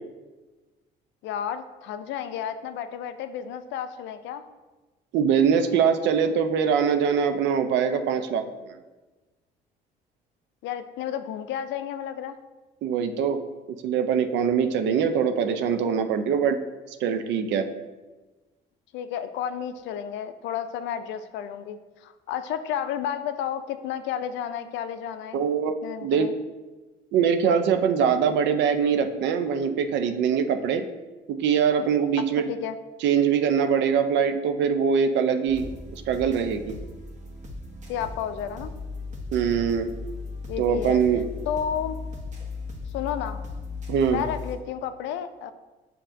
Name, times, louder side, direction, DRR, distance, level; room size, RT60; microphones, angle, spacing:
voice 1, 1.2-4.4 10.6-12.4 18.9-26.3 32.5-32.8 37.9-38.7 40.5-41.0 41.5-42.0 42.9-43.4 44.1-45.5, left 9 dB, 70° left, 11 dB, 0.4 m, -32 dB
voice 2, 5.1-8.8 12.8-13.4 13.8-16.6 17.0-17.7 25.3-25.7 26.0-26.3 27.1-30.9 31.3-32.5 33.0-35.7 36.1-36.7 39.3-39.9 40.6-41.2 43.9-44.2, right 7 dB, 65° right, 8 dB, 0.5 m, -23 dB
sound 1, 35.5-44.5, left 3 dB, 40° right, 1.3 m, -37 dB
7.2 x 2.7 x 2.6 m, 1.2 s
hypercardioid pair, 60°, 20 cm